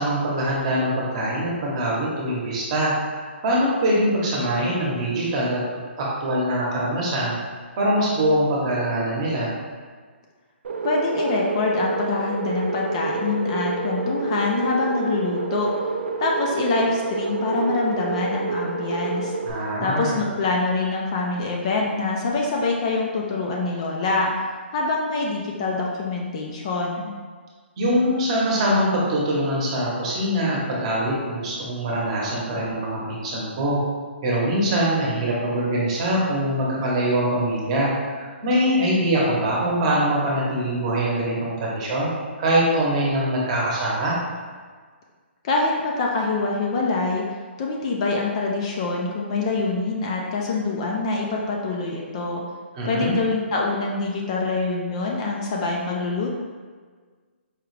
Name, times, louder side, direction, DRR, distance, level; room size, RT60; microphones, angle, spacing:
voice 1, 0.0-2.9 3.4-7.4 7.8-9.5 19.4-20.2 27.8-33.8 34.2-37.9 38.2-42.1 42.4-44.1 52.7-53.1, right 1 dB, 30° right, -5 dB, 0.9 m, -23 dB
sound 1, 10.6-19.5, right 3 dB, 70° right, 0.4 m, -28 dB
voice 2, 10.8-15.7 16.2-19.3 19.8-24.3 24.7-27.1 45.4-47.2 47.6-52.4 52.8-56.3, left 3 dB, 30° left, -1 dB, 0.4 m, -25 dB
4.8 x 2.4 x 3.1 m, 1.5 s
hypercardioid pair, 160°, 6 cm